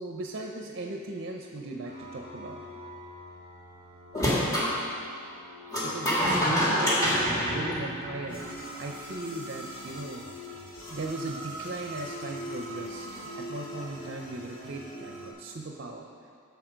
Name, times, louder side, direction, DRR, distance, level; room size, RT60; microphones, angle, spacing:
voice 1, 0.0-2.7 5.8-8.5 8.8-10.3 10.9-16.1, right 2 dB, 50° right, 1 dB, 0.6 m, -38 dB
sound 1, 1.8-15.3, equal, 70° left, 2.2 m, -43 dB
sound 2, 4.1-4.7 5.7-8.4, equal, 15° left, 1.7 m, -26 dB
10.5 x 7.0 x 5.1 m, 2.3 s
head